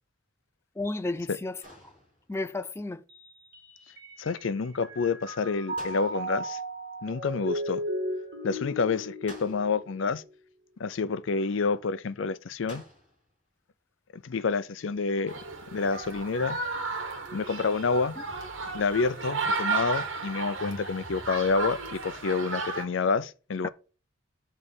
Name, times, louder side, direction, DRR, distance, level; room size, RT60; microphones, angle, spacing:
voice 1, 0.8-1.6 2.3-3.0 23.6-23.7, left 2 dB, 15° left, 0.3 m, -32 dB
sound 1, 1.6-2.5 5.8-6.6 9.3-10.0 12.7-13.3, left 1 dB, 30° left, 3.7 m, -49 dB
Mallet percussion, 3.1-4.5 4.8-10.2, equal, 55° right, 1.5 m, -36 dB
voice 2, 4.2-6.6 7.0-7.8 8.4-10.2 10.8-12.8 14.1-15.3 15.7-16.6 17.3-18.1 18.7-23.7, left 4 dB, 75° left, 0.5 m, -28 dB
sound 2, 15.3-22.9, right 4 dB, 85° right, 1.5 m, -33 dB
8.8 x 3.3 x 6.7 m
head